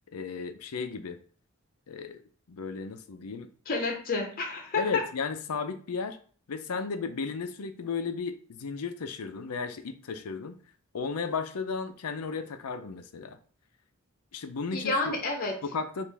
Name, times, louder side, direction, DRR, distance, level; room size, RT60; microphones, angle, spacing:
voice 1, 0.1-1.2 1.9-2.2 2.5-3.5 4.7-6.2 6.5-10.6 10.9-13.4 14.3-15.2 15.6-16.1, left 5 dB, 85° left, 9 dB, 0.5 m, -34 dB
voice 2, 3.7-5.0 14.7-15.5, left 3 dB, 40° left, 3 dB, 0.8 m, -29 dB
5.1 x 2.5 x 3.4 m, 0.43 s
head